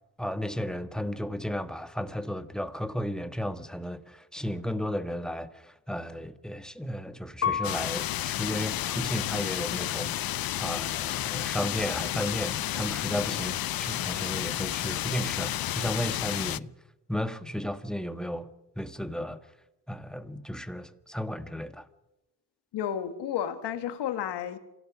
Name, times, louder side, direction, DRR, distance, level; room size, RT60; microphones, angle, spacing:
voice 1, 0.2-16.7 17.1-18.5 18.8-19.4 19.9-21.9, equal, ahead, 1.6 m, -34 dB
Piano, 7.4-10.2 10.8-11.5, left 7 dB, 35° left, 1.4 m, -36 dB
sound 1, 7.6-16.6, left 13 dB, 60° left, 0.6 m, -31 dB
voice 2, 22.7-24.6, left 9 dB, 80° left, 1.8 m, -32 dB
26.5 x 17.0 x 6.2 m
supercardioid pair, 65°, 40 cm